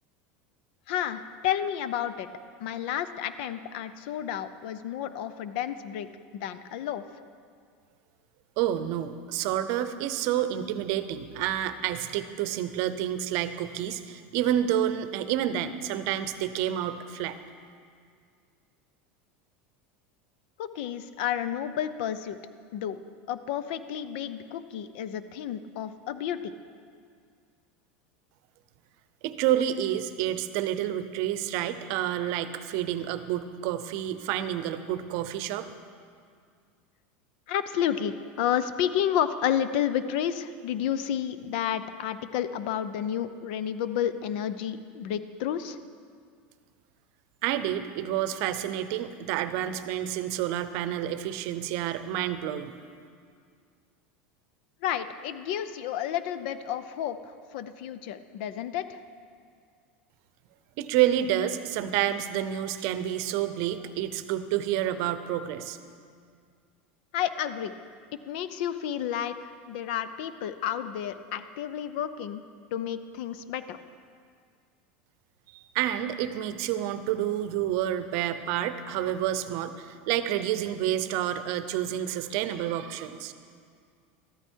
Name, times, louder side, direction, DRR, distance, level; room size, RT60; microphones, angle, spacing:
voice 1, 0.9-2.3 2.6-6.1 6.3-7.0 20.6-22.4 22.7-23.0 23.3-26.5 37.5-45.8 54.8-59.0 67.1-67.7 68.3-72.4 72.7-73.8, left 10 dB, 70° left, 13 dB, 0.6 m, -31 dB
voice 2, 8.6-17.4 29.2-35.7 47.4-52.7 60.8-65.8 75.5-83.3, right 11 dB, 60° right, 12 dB, 0.7 m, -29 dB
13.5 x 12.5 x 4.6 m, 2.1 s
supercardioid pair, 130°, 6 cm